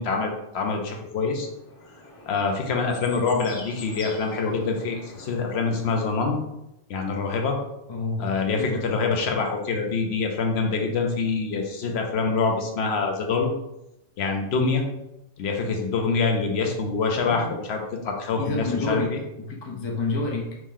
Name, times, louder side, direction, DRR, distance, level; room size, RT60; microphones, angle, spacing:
voice 1, 0.0-1.5 2.3-6.4 6.9-7.6 8.2-13.5 14.2-14.8 15.4-17.8 18.0-19.2, left 4 dB, 70° left, 2 dB, 0.9 m, -25 dB
sound 1, 1.4-6.1, left 2 dB, 90° left, 1.4 m, -44 dB
voice 2, 7.9-8.9 17.3-17.5 18.3-20.6, left 3 dB, 40° left, -1 dB, 0.3 m, -29 dB
3.0 x 2.6 x 3.6 m, 0.85 s
omnidirectional pair, 1.2 m